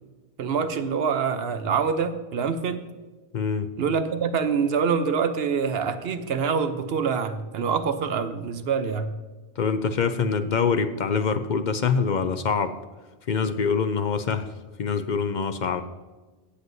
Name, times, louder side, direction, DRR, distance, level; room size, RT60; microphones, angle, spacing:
voice 1, 0.4-2.9 3.8-9.1, right 6 dB, 70° right, 10 dB, 1.0 m, -25 dB
voice 2, 3.3-3.7 9.6-12.7 13.3-14.5 14.8-15.8, left 5 dB, 55° left, 10 dB, 0.6 m, -24 dB
16.5 x 7.9 x 2.7 m, 1.3 s
omnidirectional pair, 1.1 m